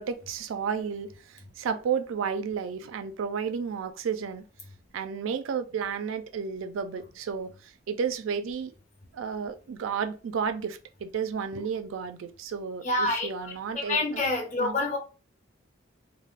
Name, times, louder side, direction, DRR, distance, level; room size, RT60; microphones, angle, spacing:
voice 1, 0.0-4.5 4.9-8.7 9.1-14.2 14.6-14.8, right 6 dB, 80° right, 0.4 m, -32 dB
voice 2, 12.8-15.0, left 2 dB, 40° left, 0.8 m, -28 dB
3.4 x 2.0 x 2.4 m
head